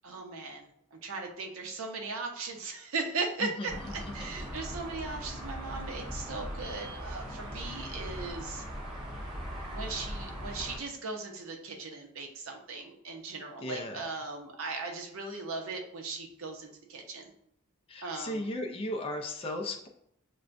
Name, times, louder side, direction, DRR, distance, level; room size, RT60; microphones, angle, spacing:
voice 1, 0.0-3.7 4.1-8.6 9.7-17.3 18.0-18.5, right 3 dB, 80° right, 2 dB, 0.7 m, -38 dB
sound 1, 3.7-10.8, equal, 20° right, 1.0 m, -40 dB
voice 2, 4.0-4.8 7.5-7.9 13.6-14.1 17.9-19.9, left 1 dB, 25° left, 2 dB, 0.4 m, -37 dB
5.9 x 2.2 x 2.5 m, 0.72 s
head